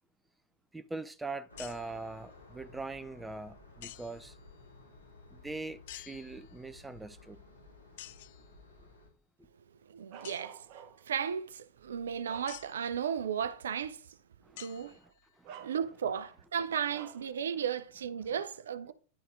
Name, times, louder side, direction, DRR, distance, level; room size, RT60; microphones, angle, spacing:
voice 1, 0.7-4.4 5.3-7.4 14.4-14.7 15.4-15.7, right 3 dB, 5° right, 0.4 m, -42 dB
sound 1, 1.5-9.1, left 3 dB, 80° left, 3.6 m, -55 dB
sound 2, 1.6-2.1 3.8-4.4 5.9-6.7 8.0-8.5 10.2-10.5 12.5-12.9 14.6-15.4, left 14 dB, 50° left, 0.4 m, -50 dB
voice 2, 9.9-10.6 11.0-14.0 14.6-15.0 15.6-18.9, right 8 dB, 65° right, 0.5 m, -35 dB
Bark, 10.1-11.2 11.8-13.0 13.5-13.6 14.7-14.9 15.4-16.2 16.9-17.3, right 8 dB, 45° right, 0.9 m, -51 dB
10.5 x 4.1 x 3.8 m
figure-of-eight pair, 90°, 0 cm